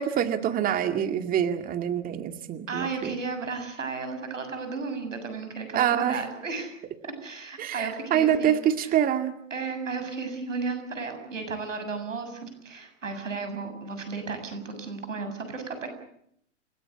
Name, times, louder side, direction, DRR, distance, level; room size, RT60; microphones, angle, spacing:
voice 1, 0.0-3.1 5.7-6.2 7.6-9.3, right 10 dB, 25° right, 7 dB, 2.1 m, -25 dB
voice 2, 2.7-6.7 7.0-9.0 9.5-15.9, right 4 dB, 85° right, 8 dB, 7.4 m, -34 dB
29.5 x 17.5 x 8.4 m, 0.74 s
hypercardioid pair, 120°, 37 cm